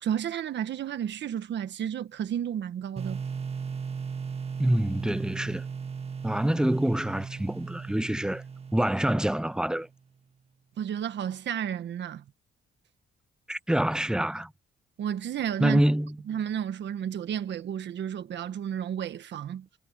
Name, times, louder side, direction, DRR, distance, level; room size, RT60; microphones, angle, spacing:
voice 1, 0.0-3.2 10.8-12.2 15.0-15.8 16.3-19.7, right 9 dB, 65° right, 1.4 m, -32 dB
sound 1, 3.0-9.8, right 6 dB, 30° right, 1.8 m, -37 dB
voice 2, 4.6-5.6 6.2-8.4 8.7-9.9 13.5-14.5 15.6-16.2, right 1 dB, 5° right, 0.6 m, -26 dB
cardioid pair, 90°, 20 cm